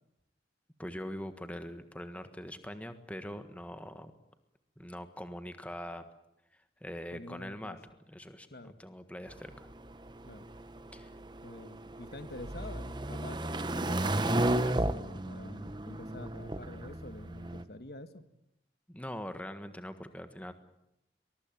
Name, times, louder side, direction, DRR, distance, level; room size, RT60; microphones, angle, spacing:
voice 1, 0.8-4.1 4.8-6.0 6.5-7.8 8.1-9.7 10.9-11.1 18.9-20.5, equal, 10° left, 9 dB, 1.5 m, -43 dB
voice 2, 7.1-7.8 8.5-8.8 10.2-10.5 11.4-13.4 13.7-18.2, left 1 dB, 55° left, 11 dB, 1.5 m, -47 dB
sound 1, 9.3-17.6, right 1 dB, 25° right, 1.0 m, -34 dB
23.0 x 22.0 x 9.0 m, 0.83 s
head